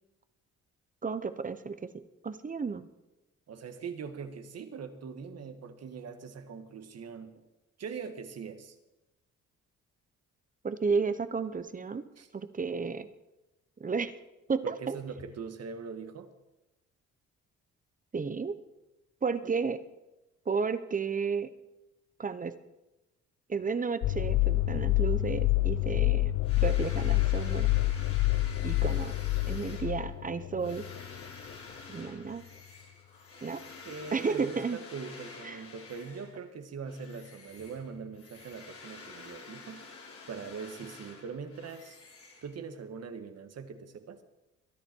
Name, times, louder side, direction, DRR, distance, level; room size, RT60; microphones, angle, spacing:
voice 1, 1.0-1.9 2.2-2.9 10.6-12.1 12.3-13.1 13.8-14.1 14.5-15.0 18.1-18.6 19.2-19.8 20.5-21.5 22.2-22.5 23.5-26.3 26.6-27.7 28.6-29.1 29.5-30.8 31.9-32.4 33.4-33.6 34.1-34.8 35.4-35.6, right 5 dB, 25° right, 13 dB, 0.9 m, -32 dB
voice 2, 3.5-7.4 7.8-8.8 12.2-12.3 14.6-16.3 19.4-19.5 33.9-39.8 40.3-42.0 42.4-44.2, right 5 dB, 55° right, 8 dB, 1.8 m, -42 dB
sound 1, 24.0-31.2, left 18 dB, 70° left, 0.9 m, -27 dB
sound 2, 26.4-36.5 36.8-42.9, left 4 dB, 50° left, 3.4 m, -49 dB
22.5 x 10.5 x 4.6 m, 1.0 s
cardioid pair, 90°, 30 cm